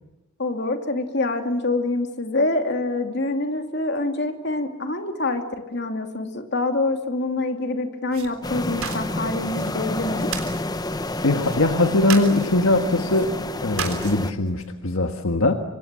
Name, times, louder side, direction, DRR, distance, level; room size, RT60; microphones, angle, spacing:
voice 1, 0.4-10.3, left 2 dB, 55° left, 5 dB, 2.6 m, -26 dB
sound 1, 8.1-14.7, right 7 dB, 85° right, 3.7 m, -37 dB
sound 2, 8.4-14.3, left 2 dB, 20° left, 0.8 m, -29 dB
voice 2, 11.2-13.4 13.6-15.5, left 2 dB, 75° left, 6 dB, 1.5 m, -21 dB
26.5 x 24.0 x 7.6 m, 1.0 s
head